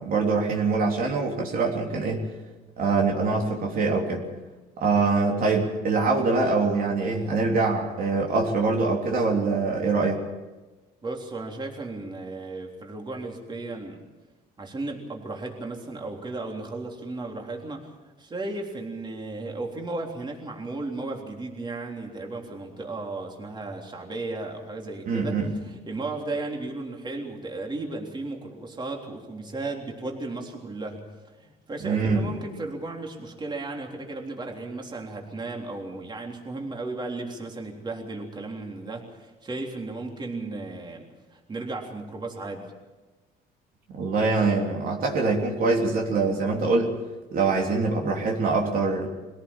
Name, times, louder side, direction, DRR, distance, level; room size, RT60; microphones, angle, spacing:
voice 1, 0.0-2.3 2.8-4.3 4.8-10.2 25.1-25.5 31.8-32.3 44.0-46.9 47.3-49.1, right 3 dB, 60° right, 0 dB, 3.4 m, -24 dB
voice 2, 11.0-14.0 14.6-31.0 31.4-41.0 41.3-42.7, right 2 dB, 25° right, 1 dB, 3.6 m, -35 dB
23.0 x 17.5 x 7.3 m, 1.2 s
cardioid pair, 110°, 17 cm